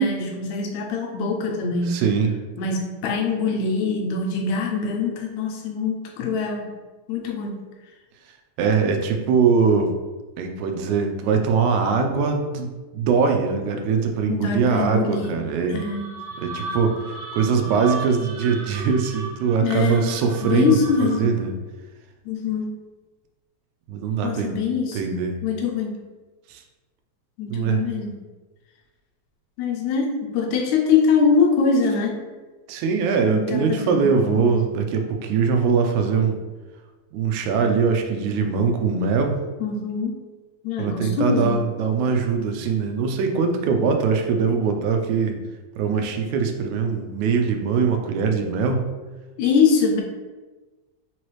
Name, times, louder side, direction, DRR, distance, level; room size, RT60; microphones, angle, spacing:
voice 1, 0.0-2.0 2.6-6.7 7.1-7.6 14.3-15.4 15.7-16.1 19.6-20.2 20.4-21.4 22.3-22.7 24.2-25.1 25.4-26.0 27.4-28.1 29.6-32.2 33.3-34.5 39.6-40.2 40.6-41.6 49.4-50.0, left 5 dB, 80° left, 2 dB, 1.9 m, -23 dB
voice 2, 1.9-2.3 8.6-9.9 10.4-15.9 16.4-21.5 23.9-24.6 24.9-25.3 26.5-26.6 27.5-27.8 32.7-36.4 37.1-39.4 40.8-45.4 45.8-48.9, right 5 dB, 85° right, 4 dB, 2.0 m, -22 dB
sound 1, 15.7-21.4, right 3 dB, 65° right, 1.9 m, -36 dB
4.7 x 3.1 x 3.0 m, 1.3 s
omnidirectional pair, 3.3 m